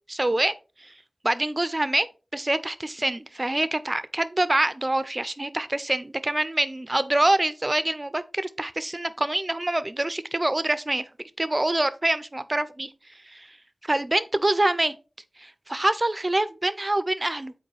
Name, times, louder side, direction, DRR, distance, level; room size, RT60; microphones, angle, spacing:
voice 1, 0.1-0.5 0.8-0.9 1.2-2.1 2.3-11.0 11.4-12.9 13.2-13.6 13.8-14.9 15.4-17.5, right 1 dB, 30° right, 0.6 m, -25 dB
7.9 x 4.5 x 3.3 m
wide cardioid pair, 60°, 0 cm